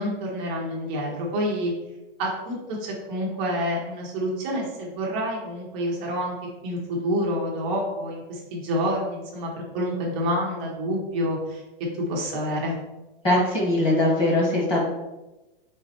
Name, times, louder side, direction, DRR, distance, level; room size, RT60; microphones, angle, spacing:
voice 1, 0.0-1.7 2.2-6.3 6.6-11.6 12.1-12.7, equal, 10° right, -3 dB, 0.3 m, -28 dB
voice 2, 13.2-14.8, left 1 dB, 20° left, -4 dB, 1.1 m, -21 dB
4.0 x 3.2 x 4.0 m, 1.0 s
hypercardioid pair, 165°, 29 cm